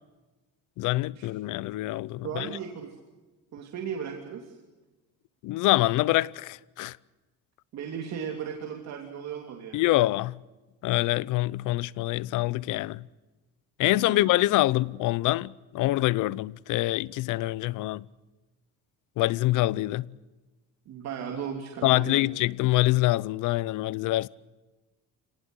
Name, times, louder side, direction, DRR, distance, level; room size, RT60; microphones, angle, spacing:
voice 1, 0.8-2.5 5.4-6.9 9.7-10.3 10.8-13.0 13.8-18.0 19.2-20.0 21.8-24.3, left 17 dB, 80° left, 0.7 m, -25 dB
voice 2, 2.2-3.0 3.5-4.6 7.7-9.9 13.9-14.2 20.9-22.3, right 7 dB, 60° right, 3.1 m, -36 dB
27.5 x 19.0 x 8.1 m
cardioid pair, 135°, 30 cm